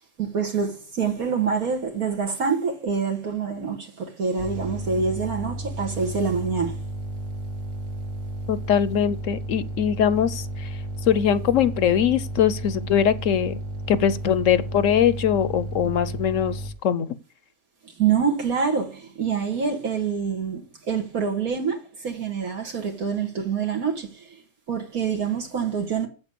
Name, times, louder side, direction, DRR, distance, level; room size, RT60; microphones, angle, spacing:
voice 1, 0.2-6.8 17.8-24.4 24.7-26.1, right 6 dB, 80° right, 2.2 m, -26 dB
sound 1, 4.4-16.7, right 1 dB, 55° right, 2.0 m, -33 dB
voice 2, 8.5-10.7 11.1-13.6 13.9-17.1, left 9 dB, 65° left, 1.0 m, -22 dB
8.1 x 7.8 x 6.9 m
omnidirectional pair, 1.5 m